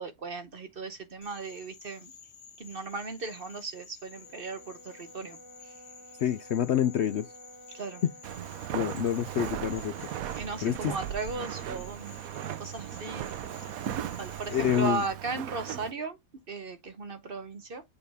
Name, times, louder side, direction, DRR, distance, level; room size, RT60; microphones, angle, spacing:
voice 1, 0.0-2.1 2.6-5.4 5.6-5.7 7.7-8.0 10.4-13.3 14.2-16.2 16.5-17.8, right 4 dB, 45° right, 0.9 m, -37 dB
Frog, 1.2-15.1, left 6 dB, 85° left, 1.7 m, -52 dB
Brass instrument, 4.1-8.4, right 1 dB, 10° right, 0.6 m, -52 dB
voice 2, 6.2-7.3 8.7-11.0 14.5-15.0, left 10 dB, 65° left, 0.7 m, -28 dB
Walk footsteps, 8.2-15.9, right 11 dB, 75° right, 1.1 m, -37 dB
7.0 x 4.0 x 3.4 m
omnidirectional pair, 1.5 m